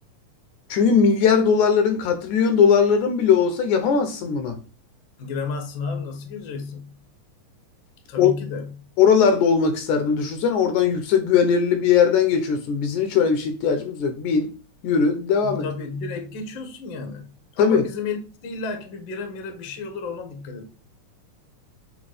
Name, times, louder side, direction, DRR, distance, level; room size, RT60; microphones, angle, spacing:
voice 1, 0.7-4.6 8.2-8.3 9.0-14.5 14.8-15.6 17.6-17.8, left 6 dB, 75° left, 2.2 m, -19 dB
voice 2, 5.2-6.9 8.1-8.8 15.4-20.7, left 4 dB, 55° left, 1.4 m, -32 dB
6.2 x 3.3 x 4.9 m
omnidirectional pair, 3.7 m